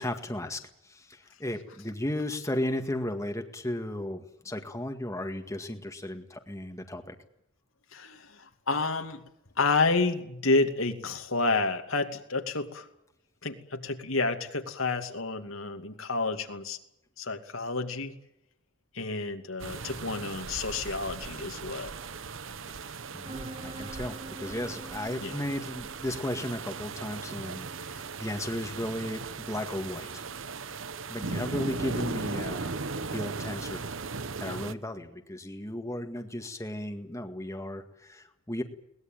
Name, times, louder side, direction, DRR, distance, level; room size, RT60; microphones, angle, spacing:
voice 1, 0.0-7.2 22.7-30.2 30.6-30.8 31.1-33.8 34.4-38.6, left 1 dB, 15° left, 5 dB, 1.9 m, -35 dB
voice 2, 7.9-9.2 9.6-12.9 13.4-16.8 17.2-18.1 18.9-21.9 25.2-25.3, left 3 dB, 75° left, 5 dB, 2.7 m, -30 dB
sound 1, 19.6-34.7, right 4 dB, 65° right, 1.0 m, -38 dB
sound 2, 23.2-34.8, right 2 dB, 25° right, 1.9 m, -50 dB
22.0 x 19.5 x 9.2 m, 0.77 s
head